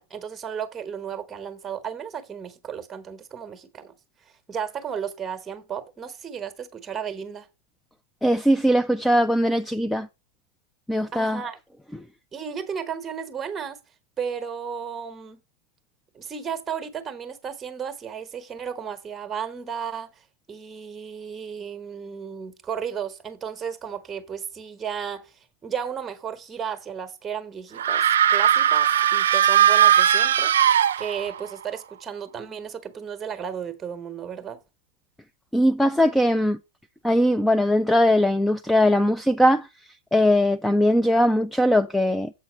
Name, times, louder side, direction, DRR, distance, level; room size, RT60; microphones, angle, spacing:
voice 1, 0.0-3.9 4.5-7.5 11.1-11.6 12.3-13.8 14.2-15.4 16.1-20.1 20.5-25.3 25.6-30.5 31.0-34.6, right 7 dB, 15° right, 1.1 m, -34 dB
voice 2, 8.2-10.1 10.9-11.4 35.5-36.6 37.0-39.7 40.1-42.3, equal, 5° left, 0.3 m, -20 dB
sound 1, 27.8-31.5, right 9 dB, 85° right, 0.4 m, -19 dB
7.5 x 4.1 x 6.2 m
hypercardioid pair, 135°, 0 cm